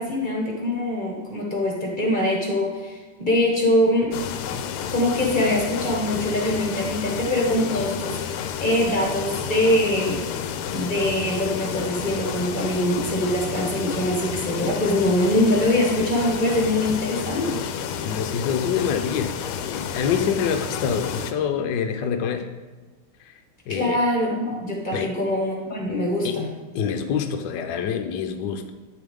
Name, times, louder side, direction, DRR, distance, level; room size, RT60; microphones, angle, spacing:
voice 1, 0.0-4.1 4.5-4.6 4.9-10.3 10.7-17.6 23.7-26.4, left 1 dB, 25° left, -1 dB, 1.3 m, -23 dB
sound 1, 4.1-21.3, left 8 dB, 90° left, 1.5 m, -31 dB
voice 2, 18.0-19.4 19.7-22.5 23.2-23.3 23.7-24.0 24.9-25.1 26.2-26.4 26.7-28.7, left 7 dB, 65° left, 6 dB, 1.2 m, -26 dB
9.3 x 6.9 x 3.6 m, 1.3 s
omnidirectional pair, 2.4 m